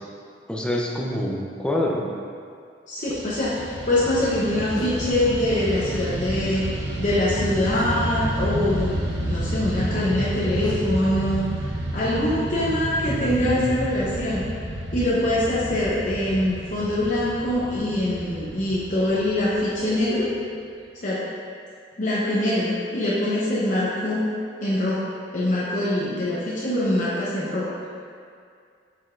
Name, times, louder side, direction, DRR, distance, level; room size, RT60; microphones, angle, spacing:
voice 1, 0.5-2.0 13.1-13.9, left 1 dB, 5° left, -2 dB, 0.6 m, -27 dB
voice 2, 2.9-6.7 7.0-11.5 11.9-14.5 14.9-20.3 21.0-21.2 22.0-24.2 24.6-27.7, left 1 dB, 45° left, -8 dB, 0.8 m, -24 dB
Fixed-wing aircraft airplane, 3.1-20.5, right 1 dB, 85° right, 0.9 m, -30 dB
sound 1, 4.8-5.1 7.7-8.1 10.6-10.9, equal, 25° left, 1.1 m, -33 dB
7.5 x 5.1 x 2.5 m, 2.2 s
head